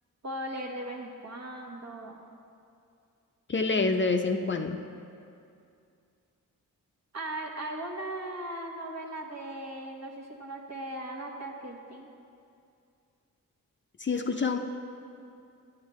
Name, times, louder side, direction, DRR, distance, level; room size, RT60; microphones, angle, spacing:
voice 1, 0.2-2.3 7.1-12.1, right 1 dB, 50° right, 0 dB, 1.2 m, -38 dB
voice 2, 3.5-4.8 14.0-14.6, left 4 dB, 35° left, 5 dB, 0.5 m, -27 dB
9.4 x 9.1 x 3.1 m, 2.5 s
cardioid pair, 50°, 34 cm